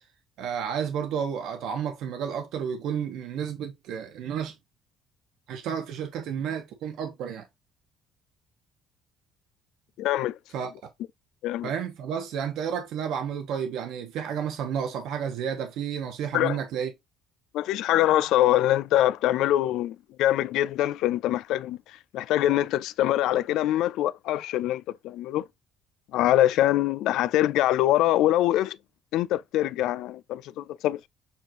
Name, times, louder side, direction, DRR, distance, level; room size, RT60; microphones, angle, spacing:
voice 1, 0.4-4.5 5.5-7.4 10.5-10.7 11.6-16.9, right 8 dB, 75° right, 1.0 m, -31 dB
voice 2, 10.0-10.4 11.4-11.7 16.3-16.6 17.5-21.8 22.1-25.5 26.1-28.8 29.1-31.1, left 13 dB, 80° left, 0.3 m, -24 dB
7.0 x 2.5 x 2.9 m
cardioid pair, 135°, 0 cm